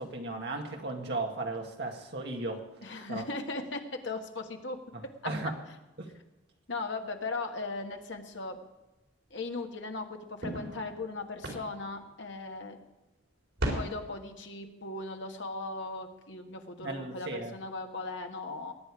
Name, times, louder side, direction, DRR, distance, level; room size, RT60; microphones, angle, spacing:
voice 1, 0.0-2.6 3.1-3.3 5.2-5.5 6.0-6.1 16.8-17.5, right 2 dB, 55° right, 1 dB, 2.2 m, -35 dB
voice 2, 2.8-4.8 6.7-8.6 9.3-12.8 13.7-18.7, left 3 dB, 70° left, 4 dB, 1.6 m, -38 dB
sound 1, 7.8-8.2 8.6-8.7 10.4-12.6 13.0-13.1 13.4-13.7, right 1 dB, 80° right, 4.6 m, -37 dB
21.5 x 9.4 x 5.0 m, 1.0 s
head